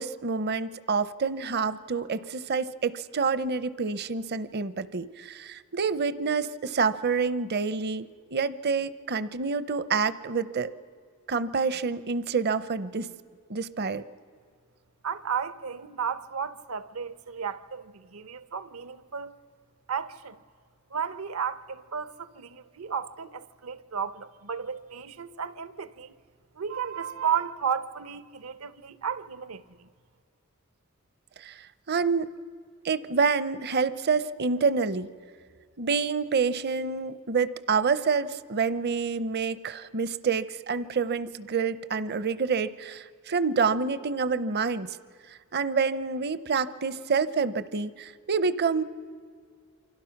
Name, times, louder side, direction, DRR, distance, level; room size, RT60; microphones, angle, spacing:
voice 1, 0.0-10.7 11.3-13.1 13.5-14.0 31.4-32.3 32.8-35.1 35.8-44.9 45.5-48.8, right 5 dB, 50° right, 0.7 m, -27 dB
voice 2, 15.0-19.3 19.9-20.4 20.9-26.1 26.6-29.9, right 7 dB, 75° right, 0.9 m, -33 dB
29.0 x 25.0 x 5.9 m
head